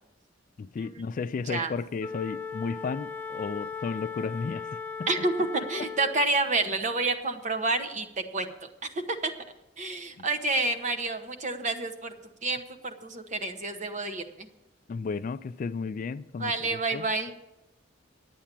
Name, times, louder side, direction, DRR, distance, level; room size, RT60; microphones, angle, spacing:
voice 1, 0.6-4.8 10.2-10.3 14.9-17.1, left 5 dB, 45° left, 0.3 m, -33 dB
Wind instrument woodwind instrument, 2.0-6.4, left 5 dB, 10° left, 0.7 m, -38 dB
voice 2, 5.1-8.0 8.3-8.5 9.2-9.3 9.8-12.1 12.4-14.5 16.4-17.3, right 3 dB, 40° right, 1.0 m, -29 dB
10.0 x 8.4 x 7.4 m
head